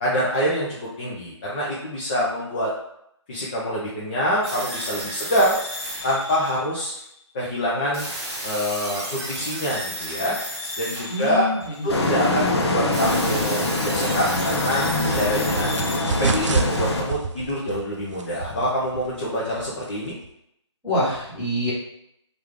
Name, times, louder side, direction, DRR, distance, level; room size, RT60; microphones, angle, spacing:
voice 1, 0.0-2.7 3.3-5.5 6.0-6.9 7.3-8.0 8.4-10.3 10.8-11.5 11.8-15.7 16.1-20.1, equal, 20° left, -5 dB, 0.5 m, -25 dB
sound 1, 4.4-7.1 7.9-12.0 12.9-17.1, equal, 10° right, 0.7 m, -33 dB
voice 2, 11.1-11.9 20.8-21.7, left 1 dB, 5° left, -14 dB, 1.4 m, -25 dB
sound 2, 11.9-17.0, left 2 dB, 60° left, 0.7 m, -24 dB
sound 3, 14.3-20.3, right 3 dB, 80° right, 0.5 m, -30 dB
3.1 x 2.4 x 3.5 m, 0.76 s
hypercardioid pair, 160°, 15 cm